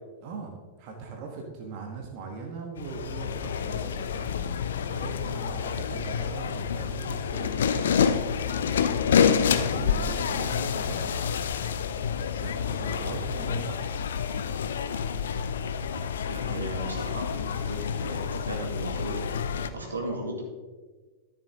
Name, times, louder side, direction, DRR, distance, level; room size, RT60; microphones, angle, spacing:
voice 1, 0.2-4.4 4.9-7.9 8.5-11.0 12.4-13.9 15.9-16.7 19.7-19.9, right 4 dB, 45° right, 1 dB, 1.5 m, -40 dB
sound 1, 2.8-19.7, left 7 dB, 65° left, 0.5 m, -28 dB
voice 2, 16.3-19.3 19.7-20.4, right 1 dB, 80° right, 0 dB, 2.1 m, -36 dB
13.0 x 6.7 x 3.7 m, 1.3 s
figure-of-eight pair, 90°, 0 cm